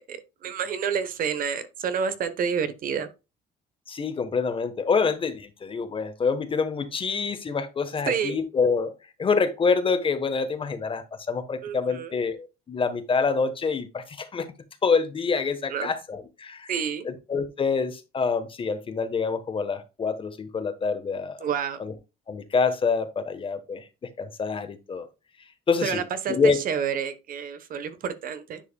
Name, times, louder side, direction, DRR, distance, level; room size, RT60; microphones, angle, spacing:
voice 1, 0.0-3.1 8.1-8.4 11.6-12.1 15.7-15.9 16.7-17.1 21.4-21.8 25.8-28.6, right 7 dB, 55° right, 1.0 m, -29 dB
voice 2, 3.9-8.9 9.2-14.5 14.8-16.7 17.0-21.4 21.8-21.9 22.3-23.8 24.2-25.1 25.7-26.0 26.3-26.6, left 5 dB, 30° left, 1.1 m, -26 dB
10.0 x 4.8 x 2.2 m
cardioid pair, 110°, 17 cm